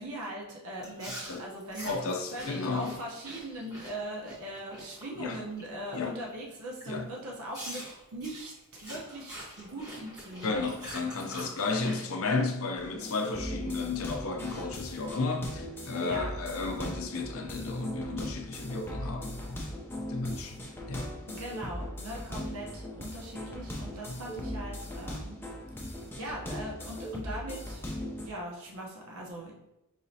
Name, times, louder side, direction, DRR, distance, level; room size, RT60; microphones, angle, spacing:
voice 1, 0.0-7.8 8.1-8.5 8.8-10.7 11.8-12.0 16.0-16.3 21.3-25.4 25.9-27.8 28.2-29.5, right 1 dB, 75° right, 0.9 m, -40 dB
Chewing mastication, 0.8-5.7 6.0-6.3 6.8-6.9 7.5-12.0, equal, 15° right, 1.2 m, -45 dB
voice 2, 1.8-3.0 5.2-5.4 5.9-6.2 6.9-7.1 10.4-20.6 20.9-21.1 24.1-24.3, left 3 dB, 65° left, 0.5 m, -33 dB
sound 1, 12.8-28.3, equal, 10° left, 0.6 m, -39 dB
4.8 x 3.0 x 2.7 m
head